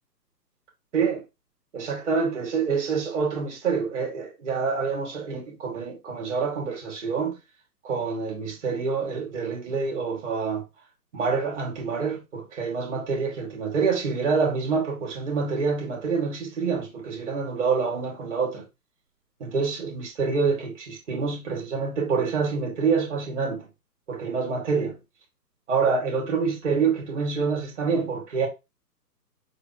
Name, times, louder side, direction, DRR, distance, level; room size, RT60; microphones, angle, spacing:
voice 1, 1.7-7.3 7.8-10.6 11.1-18.6 19.4-23.6 24.1-25.0 25.7-28.5, right 5 dB, 45° right, 2.2 m, -26 dB
6.5 x 2.5 x 2.9 m
figure-of-eight pair, 130°, 50 cm